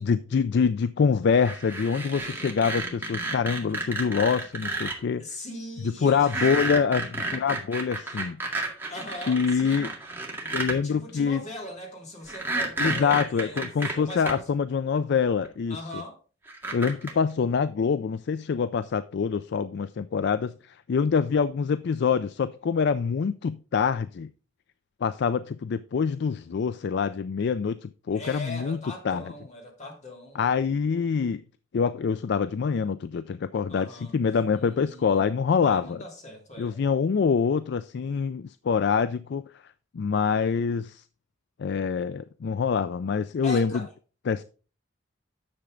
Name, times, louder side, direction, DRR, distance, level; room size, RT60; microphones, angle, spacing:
voice 1, 0.0-5.2 6.0-8.4 9.3-9.9 10.5-11.4 12.8-15.8 16.7-20.5 20.9-24.3 25.0-28.8 29.0-29.2 30.4-31.4 31.7-36.0 36.6-39.4 39.9-41.0 41.6-43.7 44.3-44.4, left 6 dB, 60° left, 0.4 m, -25 dB
sound 1, 1.4-4.9 6.2-10.8 12.3-14.3 15.4-15.5 16.5-17.1, right 2 dB, 10° right, 2.0 m, -31 dB
voice 2, 5.2-6.5 8.9-10.0 10.8-13.7 13.9-14.5 15.7-16.2 28.1-30.4 33.7-34.2 34.5-35.3 35.6-36.8 43.4-43.9, left 1 dB, 40° left, 2.9 m, -40 dB
10.0 x 6.8 x 3.7 m
head